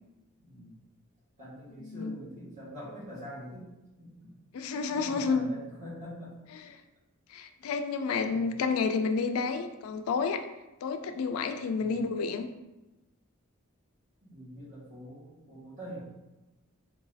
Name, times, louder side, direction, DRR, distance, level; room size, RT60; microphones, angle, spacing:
voice 1, 0.4-0.7 1.4-3.7 4.0-4.3 4.6-6.3 8.3-8.5 11.8-12.0 14.2-16.0, equal, 35° right, -10 dB, 1.4 m, -44 dB
voice 2, 1.8-2.2 4.5-5.5 6.5-6.7 7.3-10.4 10.8-12.5, left 5 dB, 80° left, 8 dB, 0.3 m, -30 dB
3.8 x 2.3 x 2.6 m, 1.0 s
head